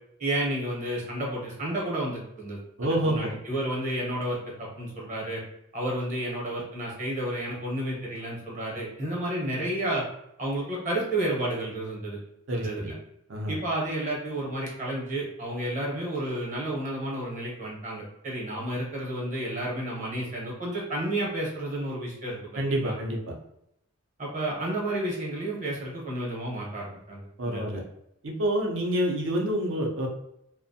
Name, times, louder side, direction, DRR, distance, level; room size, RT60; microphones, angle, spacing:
voice 1, 0.2-5.4 5.7-10.0 10.4-12.2 12.5-12.9 13.5-22.4 22.8-22.9 24.2-27.7, right 1 dB, 35° right, -3 dB, 0.8 m, -31 dB
voice 2, 2.8-3.4 12.5-12.9 13.3-13.6 22.5-23.2 27.4-27.8 28.2-30.1, right 1 dB, 65° right, 1 dB, 0.6 m, -27 dB
2.5 x 2.1 x 2.6 m, 0.79 s
head